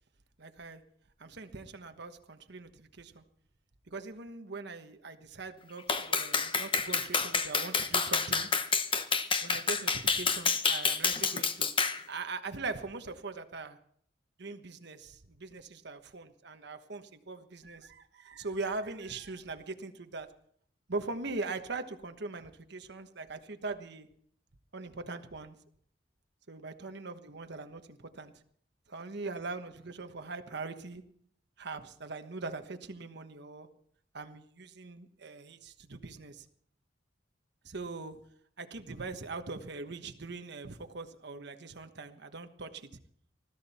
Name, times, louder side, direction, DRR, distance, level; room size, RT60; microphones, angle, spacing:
voice 1, 0.4-0.8 1.2-3.2 3.9-8.5 9.4-11.7 12.1-13.8 14.4-20.3 20.9-24.1 24.7-25.6 26.5-28.3 28.9-31.0 31.6-33.7 34.1-36.5 37.6-38.2 38.6-42.9, right 3 dB, 65° right, 7 dB, 1.2 m, -41 dB
Clapping, 5.9-12.0, left 5 dB, 30° left, 1.0 m, -29 dB
20.5 x 13.5 x 4.3 m, 0.63 s
head